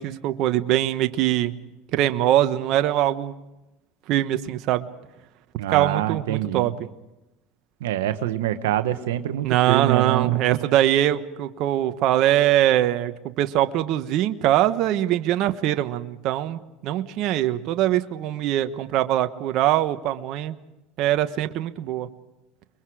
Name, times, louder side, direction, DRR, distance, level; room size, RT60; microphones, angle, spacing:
voice 1, 0.0-1.5 1.9-3.3 4.1-4.9 5.7-6.7 9.4-13.1 13.4-20.5 21.0-22.1, right 13 dB, 60° right, 9 dB, 1.2 m, -22 dB
voice 2, 5.6-6.7 7.8-10.4, right 12 dB, 90° right, 9 dB, 1.1 m, -25 dB
30.0 x 22.5 x 4.9 m, 0.96 s
supercardioid pair, 100°, 0 cm